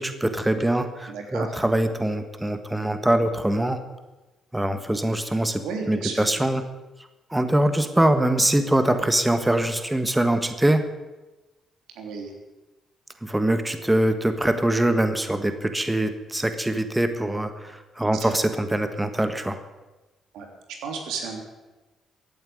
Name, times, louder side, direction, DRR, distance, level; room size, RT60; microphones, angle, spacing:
voice 1, 0.0-3.8 4.5-5.6 5.9-6.6 7.3-10.8 13.2-19.6, right 1 dB, 10° right, 8 dB, 1.5 m, -23 dB
voice 2, 1.1-1.5 5.6-6.3 11.9-12.3 18.1-18.3 20.3-20.5 20.8-21.4, right 5 dB, 90° right, 3 dB, 3.2 m, -33 dB
15.0 x 9.1 x 9.3 m, 1.1 s
cardioid pair, 90°, 0 cm